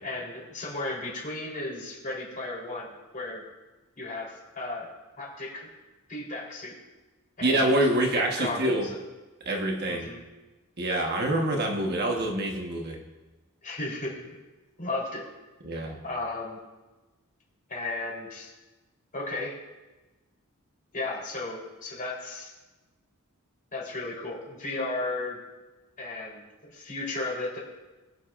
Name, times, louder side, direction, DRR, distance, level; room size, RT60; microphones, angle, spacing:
voice 1, 0.0-2.9 3.1-3.4 4.0-4.9 5.2-5.7 6.1-6.7 7.4-7.8 8.1-8.8 9.9-10.2 13.6-14.4 14.8-15.2 16.0-16.6 17.7-18.5 19.1-19.5 20.9-22.5 23.7-25.4 26.0-27.6, left 2 dB, 40° left, -4 dB, 3.8 m, -34 dB
voice 2, 7.4-8.9 9.4-10.1 10.8-13.0 15.6-16.0, right 1 dB, 50° right, 1 dB, 1.3 m, -26 dB
22.0 x 7.8 x 2.5 m, 1.1 s
head